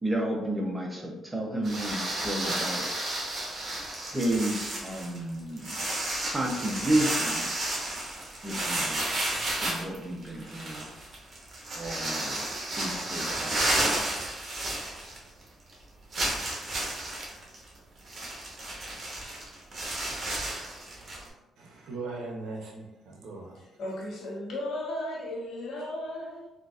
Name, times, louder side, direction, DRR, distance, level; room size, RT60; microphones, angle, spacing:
voice 1, 0.0-2.9 4.1-5.8 6.2-7.5 8.4-9.1 9.5-10.9 11.7-12.4 12.8-13.9 14.6-14.7, right 1 dB, 15° right, 0 dB, 0.7 m, -31 dB
sound 1, 1.6-15.4 15.7-15.8 16.1-21.3, right 1 dB, 40° right, 1.0 m, -32 dB
voice 2, 20.9-23.6, right 3 dB, 75° right, -1 dB, 0.6 m, -40 dB
voice 3, 23.5-26.5, left 1 dB, 65° left, -3 dB, 1.1 m, -35 dB
3.7 x 2.5 x 2.4 m, 1.0 s
cardioid pair, 90°, 0 cm